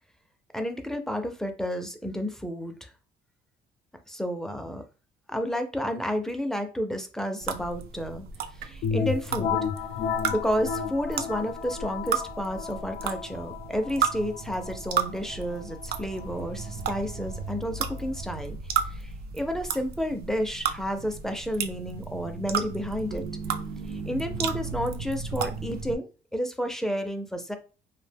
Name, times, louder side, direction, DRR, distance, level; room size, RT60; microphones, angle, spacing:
voice 1, 0.5-2.9 4.1-4.8 5.3-8.2 8.5-9.7 10.3-18.6 18.9-23.3 23.9-27.6, equal, 5° left, 6 dB, 0.4 m, -31 dB
sound 1, 7.4-25.9, right 6 dB, 65° right, 0.4 m, -34 dB
sound 2, 8.8-18.4, left 6 dB, 80° left, 0.4 m, -34 dB
2.4 x 2.1 x 3.3 m, 0.35 s
cardioid pair, 110°, 17 cm